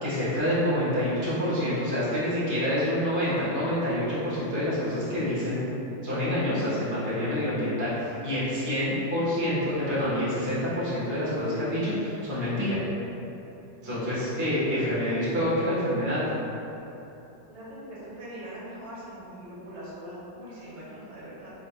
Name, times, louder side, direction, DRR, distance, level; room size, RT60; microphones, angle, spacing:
voice 1, 0.0-5.6 6.0-12.8 13.8-16.2, equal, 15° right, -11 dB, 0.8 m, -27 dB
voice 2, 17.5-21.5, equal, 80° right, -8 dB, 1.7 m, -42 dB
5.0 x 3.4 x 2.2 m, 3.0 s
omnidirectional pair, 2.0 m